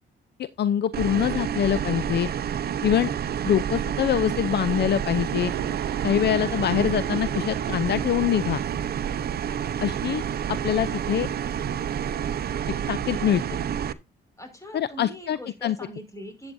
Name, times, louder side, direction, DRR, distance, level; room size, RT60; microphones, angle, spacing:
voice 1, 0.4-2.3 2.8-3.1 3.5-5.5 6.0-8.6 9.8-10.2 10.5-11.3 12.9-13.4 14.7-15.8, left 10 dB, 55° left, 0.6 m, -24 dB
sound 1, 0.9-13.9, right 8 dB, 50° right, 0.8 m, -29 dB
sound 2, 4.5-12.5, right 11 dB, 80° right, 1.0 m, -39 dB
voice 2, 6.2-6.5 14.4-16.5, equal, 15° left, 5.2 m, -41 dB
12.5 x 8.6 x 2.6 m
cardioid pair, 90°, 20 cm